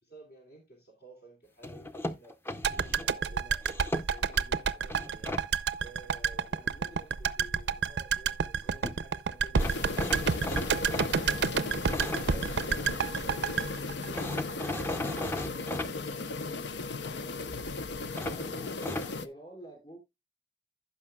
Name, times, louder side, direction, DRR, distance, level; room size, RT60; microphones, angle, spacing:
voice 1, 0.0-3.7 3.9-5.4 5.8-9.8 10.7-16.7 17.2-17.6, right 2 dB, 60° left, 2.7 m, -53 dB
sound 1, 1.6-3.1 3.6-4.4 4.9-5.4 8.5-8.6 8.8-9.0 9.5-13.0 14.1-15.9 18.2-19.1, left 1 dB, 15° left, 0.6 m, -37 dB
sound 2, 2.6-14.8 15.1-15.2, right 6 dB, 70° right, 0.5 m, -29 dB
sound 3, 9.6-19.3, left 3 dB, 80° left, 0.7 m, -36 dB
voice 2, 18.3-18.6 19.1-20.0, right 1 dB, 30° left, 4.7 m, -48 dB
15.5 x 5.9 x 2.3 m
head